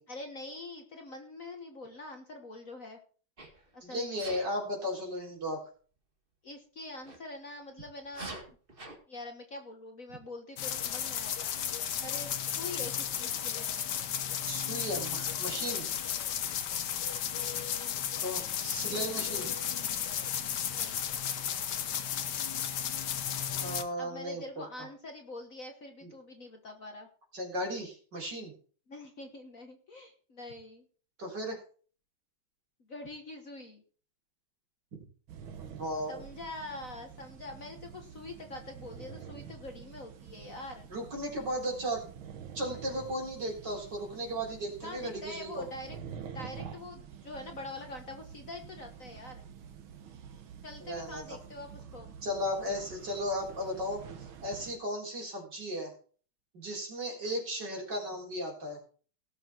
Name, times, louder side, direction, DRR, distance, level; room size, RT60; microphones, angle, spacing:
voice 1, 0.1-3.0 3.7-4.2 6.4-8.5 9.1-11.5 12.0-13.7 17.3-17.6 20.7-21.0 24.0-27.1 28.9-30.8 32.9-33.8 36.1-40.9 44.8-46.0 46.3-49.4 50.6-52.1, left 2 dB, 45° left, 4 dB, 1.5 m, -44 dB
Sneeze, 3.4-3.6 4.2-4.5 7.0-7.2 8.0-9.0, right 2 dB, 25° right, 2.2 m, -44 dB
voice 2, 3.8-5.6 14.5-15.9 18.2-19.5 23.5-24.6 26.0-26.1 27.3-28.5 31.2-31.6 35.6-36.2 40.9-42.0 42.5-45.6 50.8-51.4 52.2-54.0 54.4-55.9 56.5-58.8, equal, 55° right, 0 dB, 4.6 m, -35 dB
sound 1, 10.6-23.8, left 9 dB, 60° left, 1.4 m, -34 dB
sound 2, 35.3-54.8, right 8 dB, 75° right, 1.9 m, -48 dB
18.0 x 6.6 x 4.4 m, 0.42 s
omnidirectional pair, 2.3 m